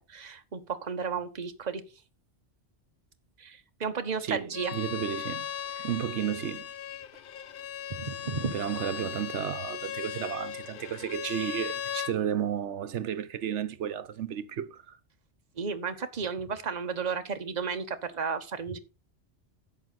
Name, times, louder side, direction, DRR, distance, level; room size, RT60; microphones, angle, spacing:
voice 1, 0.0-1.8 3.4-4.7 7.9-8.6 15.6-18.8, right 5 dB, 40° right, 1.1 m, -33 dB
voice 2, 4.2-5.5 5.8-6.7 8.5-15.0, right 9 dB, 75° right, 1.1 m, -33 dB
Bowed string instrument, 4.5-12.1, left 9 dB, 55° left, 0.7 m, -37 dB
11.0 x 7.6 x 4.1 m
omnidirectional pair, 1.2 m